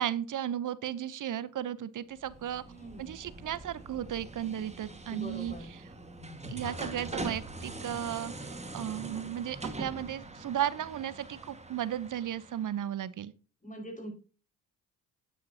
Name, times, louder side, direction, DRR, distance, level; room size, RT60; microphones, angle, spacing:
voice 1, 0.0-2.6 3.0-5.5 6.5-13.3, right 10 dB, 50° right, 0.8 m, -35 dB
sound 1, 2.1-12.9, right 2 dB, 15° right, 1.7 m, -43 dB
voice 2, 2.7-3.1 5.1-5.7 13.6-14.1, equal, 20° left, 5.1 m, -43 dB
sound 2, 6.2-7.1, left 2 dB, 60° left, 3.2 m, -45 dB
9.4 x 8.5 x 2.8 m
hypercardioid pair, 50°, 42 cm